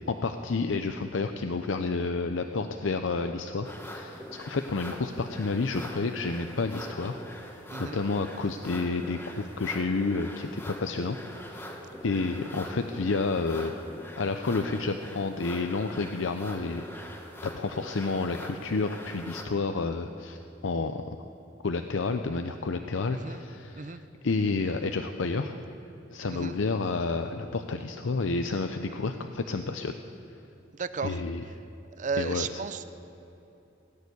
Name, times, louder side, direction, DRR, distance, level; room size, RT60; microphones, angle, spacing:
voice 1, 0.1-7.2 7.5-11.2 11.4-11.7 12.0-13.8 14.2-17.1 17.4-21.2 21.6-25.6 26.1-30.0 31.0-31.4 32.2-32.6, left 3 dB, 80° left, 7 dB, 0.6 m, -30 dB
sound 1, 3.6-19.4, equal, 10° left, 1.2 m, -43 dB
voice 2, 23.1-23.4 23.8-24.0 26.3-26.5 30.7-31.2 32.0-32.8, right 5 dB, 40° right, 13 dB, 0.5 m, -34 dB
17.5 x 6.9 x 9.6 m, 2.9 s
head